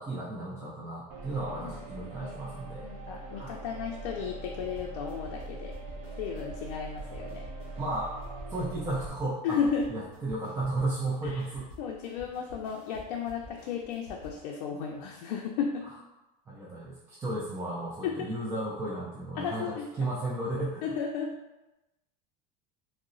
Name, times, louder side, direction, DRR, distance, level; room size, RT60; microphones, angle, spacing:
voice 1, 0.0-2.9 3.3-3.6 7.8-8.2 8.5-9.6 9.9-11.7 16.5-20.9, right 2 dB, 15° right, -7 dB, 0.3 m, -34 dB
sound 1, 1.1-9.1, right 2 dB, 50° right, 0.7 m, -42 dB
voice 2, 1.5-2.5 2.8-5.7 6.2-7.4 9.4-9.9 11.2-11.4 11.8-15.9 18.0-18.1 19.4-19.9 20.8-21.4, left 6 dB, 80° left, 0 dB, 0.4 m, -34 dB
sound 2, 4.6-14.4, equal, 20° left, 1.2 m, -51 dB
3.7 x 2.1 x 2.5 m, 1.0 s
supercardioid pair, 155°, 21 cm